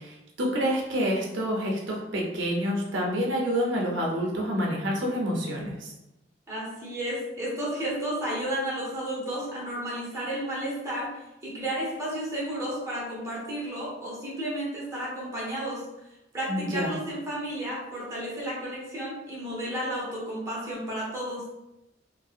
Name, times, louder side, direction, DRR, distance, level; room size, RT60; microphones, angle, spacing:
voice 1, 0.0-5.9 16.5-17.0, equal, 85° right, -2 dB, 0.5 m, -28 dB
voice 2, 6.5-11.1 11.4-15.8 16.3-21.4, right 1 dB, 15° right, -7 dB, 0.7 m, -32 dB
2.6 x 2.0 x 2.4 m, 0.92 s
head